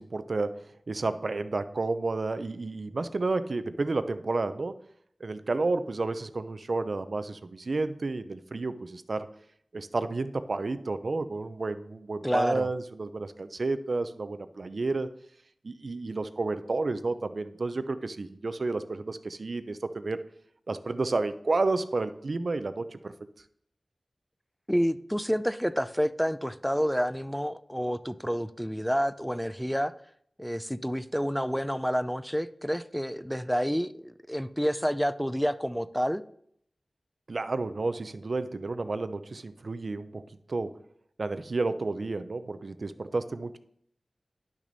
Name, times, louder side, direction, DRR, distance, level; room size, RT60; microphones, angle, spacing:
voice 1, 0.0-4.8 5.2-9.3 9.7-15.1 15.6-20.2 20.7-23.1 37.3-40.2 40.5-40.7 41.2-43.6, right 3 dB, 70° right, 11 dB, 0.6 m, -31 dB
voice 2, 12.2-12.7 24.7-29.9 30.4-36.2, equal, ahead, 14 dB, 0.5 m, -29 dB
10.5 x 6.2 x 4.1 m, 0.67 s
cardioid pair, 40°, 0 cm